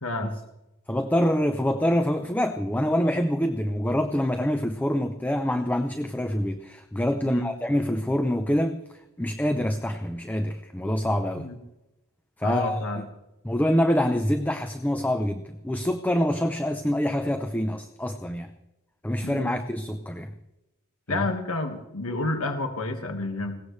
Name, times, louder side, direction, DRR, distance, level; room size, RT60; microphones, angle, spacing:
voice 1, 0.0-0.3 7.3-7.5 11.4-11.6 12.4-13.0 19.2-19.6 21.1-23.6, left 2 dB, 75° left, 5 dB, 1.7 m, -30 dB
voice 2, 0.9-8.8 9.2-11.5 12.4-12.8 13.4-18.5 19.0-20.3 21.1-21.2, equal, 10° left, 7 dB, 0.6 m, -26 dB
21.0 x 17.5 x 3.3 m, 0.95 s
head